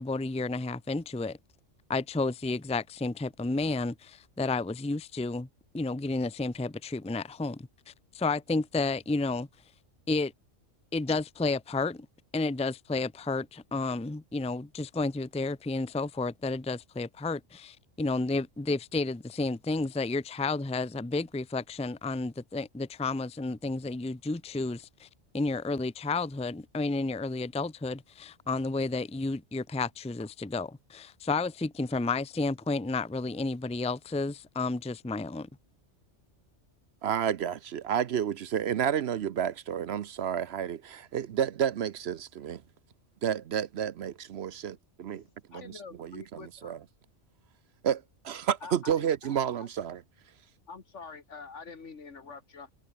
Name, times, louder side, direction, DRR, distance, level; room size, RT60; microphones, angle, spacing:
voice 1, 0.0-1.4 1.9-5.5 5.7-9.5 10.1-10.3 10.9-12.1 12.3-25.1 25.3-35.5, left 3 dB, 5° left, 0.6 m, -31 dB
voice 2, 37.0-42.6 43.2-45.2 45.5-46.8 47.8-50.0, right 9 dB, 60° right, 0.9 m, -31 dB
voice 3, 45.1-46.7 48.6-49.3 49.6-49.7 50.7-52.7, left 5 dB, 70° left, 2.3 m, -46 dB
omnidirectional pair, 1.3 m